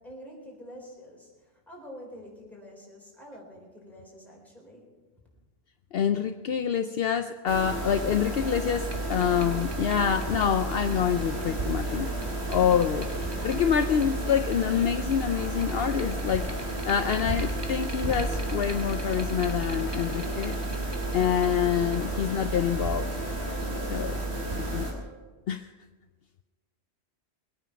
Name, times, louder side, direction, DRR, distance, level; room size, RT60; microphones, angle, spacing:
voice 1, 0.0-1.3 1.7-5.0, equal, ahead, -3 dB, 4.4 m, -46 dB
voice 2, 5.9-12.1 12.5-20.6 21.1-23.1 23.9-24.2 24.5-24.9 25.5-25.7, left 8 dB, 65° left, 9 dB, 0.8 m, -27 dB
sound 1, 7.5-24.9, right 2 dB, 70° right, 3.5 m, -32 dB
sound 2, 8.8-24.0, right 1 dB, 25° right, 1.4 m, -48 dB
Wind instrument woodwind instrument, 15.3-25.2, left 6 dB, 40° right, 3.0 m, -50 dB
22.0 x 9.2 x 5.9 m, 1.3 s
omnidirectional pair, 1.1 m